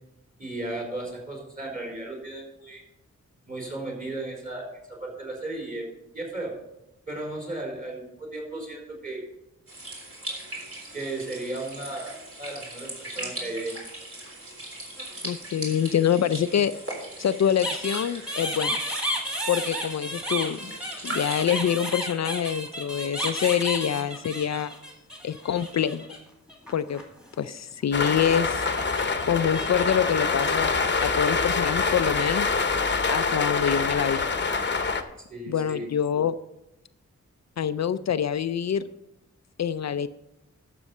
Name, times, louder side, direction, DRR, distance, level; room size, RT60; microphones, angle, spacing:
voice 1, 0.4-2.8 3.4-5.9 6.1-6.5 7.1-9.2 10.9-13.7 35.3-35.9, right 2 dB, 30° right, -2 dB, 4.2 m, -35 dB
sound 1, 9.7-21.6, right 1 dB, 50° right, 3.7 m, -39 dB
voice 2, 15.2-16.7 17.2-18.8 19.5-20.7 21.0-24.7 25.2-26.0 26.7-27.0 27.4-28.6 29.3-30.7 31.0-32.6 33.1-34.2 35.5-36.4 37.6-38.8 39.6-40.1, left 8 dB, 65° left, 12 dB, 0.4 m, -25 dB
sound 2, 17.6-26.2 26.5-27.5 28.0-31.2 31.6-32.5 32.8-33.1 34.0-34.7, equal, 5° right, 2.1 m, -33 dB
sound 3, 27.9-35.0, left 4 dB, 40° left, 0.9 m, -25 dB
12.0 x 6.9 x 5.4 m, 0.88 s
wide cardioid pair, 100°, 29 cm